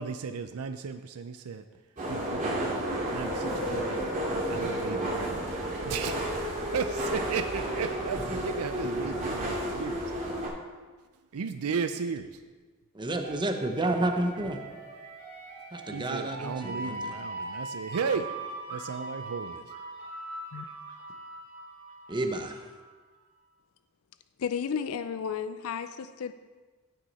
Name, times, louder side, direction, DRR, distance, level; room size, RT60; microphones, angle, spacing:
voice 1, 0.0-1.6 2.1-4.1 4.5-5.5 5.8-10.1 11.3-12.3 15.9-18.3 18.7-19.7, right 5 dB, 85° right, 0.5 m, -35 dB
sound 1, 2.0-10.5, right 1 dB, 40° right, 3.0 m, -31 dB
voice 2, 12.9-14.6 15.7-16.9 22.1-22.6, right 2 dB, 20° right, 0.9 m, -30 dB
sound 2, 13.2-22.8, right 2 dB, 70° right, 2.0 m, -41 dB
voice 3, 24.4-26.3, left 7 dB, 70° left, 0.4 m, -33 dB
16.0 x 6.3 x 4.2 m
head